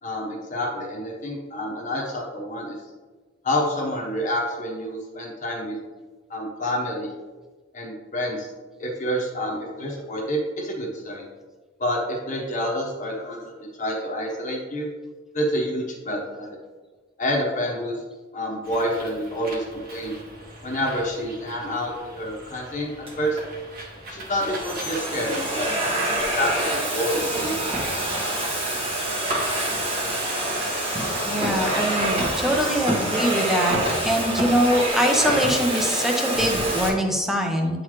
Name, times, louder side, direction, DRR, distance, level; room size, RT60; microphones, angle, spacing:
voice 1, 0.0-2.8 3.4-5.8 6.3-7.1 7.7-8.5 8.8-11.2 11.8-13.5 13.8-14.9 15.3-16.6 17.2-17.9 18.3-20.1 20.6-23.4 24.1-25.7 26.0-27.7, equal, 40° left, -2 dB, 1.1 m, -28 dB
Bird, 18.6-32.6, right 1 dB, 50° right, 1.7 m, -42 dB
Domestic sounds home sounds, 23.1-23.4 24.2-36.9, right 1 dB, 30° right, 1.5 m, -26 dB
voice 2, 31.2-33.8 34.1-37.8, equal, ahead, 1 dB, 0.8 m, -23 dB
9.4 x 3.9 x 3.1 m, 1.3 s
head